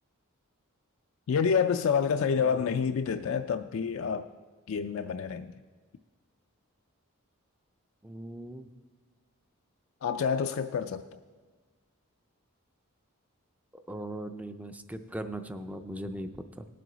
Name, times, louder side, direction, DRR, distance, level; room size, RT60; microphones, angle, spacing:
voice 1, 1.3-4.3 4.7-5.5 10.0-11.0, left 6 dB, 60° left, 0.3 m, -28 dB
voice 2, 2.4-2.8 8.0-8.7 13.7-16.7, right 1 dB, 5° right, 0.4 m, -39 dB
18.5 x 7.6 x 3.9 m
head